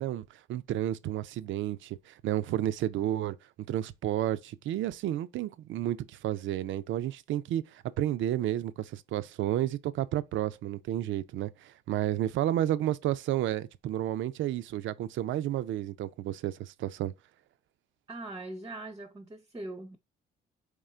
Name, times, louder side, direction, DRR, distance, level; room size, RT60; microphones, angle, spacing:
voice 1, 0.0-3.4 3.7-17.1, right 12 dB, 75° right, 0.4 m, -31 dB
voice 2, 18.1-20.0, right 2 dB, 20° right, 0.6 m, -41 dB
3.7 x 3.1 x 4.2 m
cardioid pair, 90°, 20 cm